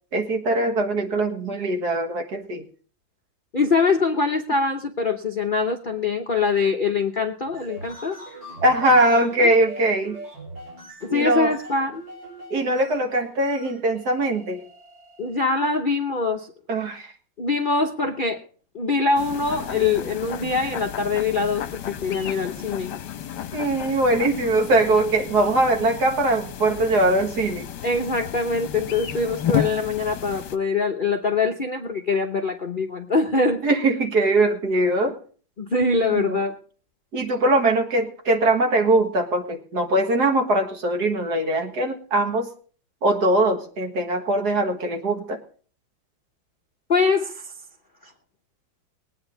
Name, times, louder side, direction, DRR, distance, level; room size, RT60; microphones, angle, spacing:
voice 1, 0.1-2.6 8.6-10.2 11.1-11.5 12.5-14.6 16.7-17.1 23.5-27.7 33.6-35.2 36.1-36.4 37.1-42.5 43.0-45.4, right 2 dB, 60° right, 4 dB, 2.1 m, -21 dB
voice 2, 3.5-8.2 9.2-9.5 11.0-12.0 15.2-16.5 17.4-18.4 18.7-22.9 27.8-33.6 35.6-36.5 46.9-47.5 48.0-48.1, left 4 dB, 40° left, 2 dB, 0.7 m, -23 dB
sound 1, 7.4-15.7, right 1 dB, 75° right, 5.4 m, -42 dB
sound 2, 19.2-30.6, left 9 dB, 70° left, 1.4 m, -33 dB
20.5 x 9.1 x 3.9 m, 0.42 s
omnidirectional pair, 2.0 m